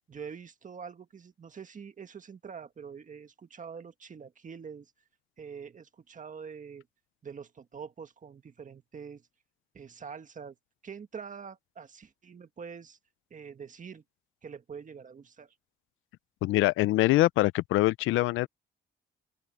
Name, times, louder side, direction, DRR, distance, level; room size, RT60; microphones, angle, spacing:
voice 1, 0.1-4.9 5.4-6.9 7.2-9.2 9.7-10.6 10.8-13.0 13.3-14.0 14.4-15.5, right 6 dB, 40° right, 1.7 m, -45 dB
voice 2, 16.4-18.5, left 17 dB, 85° left, 0.5 m, -24 dB
open air
cardioid pair, 90°, 20 cm